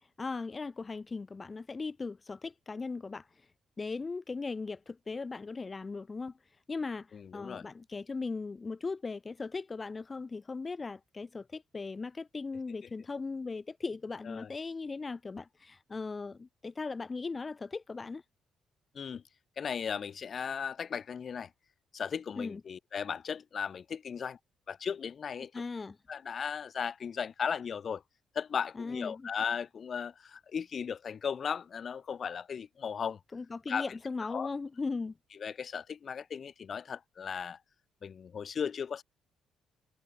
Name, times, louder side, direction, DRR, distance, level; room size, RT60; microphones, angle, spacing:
voice 1, 0.2-3.3 3.8-6.3 6.7-7.1 7.3-18.2 22.4-22.6 25.5-26.0 28.7-29.3 33.3-35.1, left 4 dB, 30° left, 4.9 m, -38 dB
voice 2, 7.1-7.7 14.2-14.5 18.9-19.2 19.6-21.5 21.9-24.4 24.7-25.5 26.1-28.0 28.3-33.2 33.7-33.9 34.3-34.5 35.4-37.6 38.0-39.0, left 7 dB, 50° left, 5.8 m, -36 dB
cardioid pair, 90°, 0 cm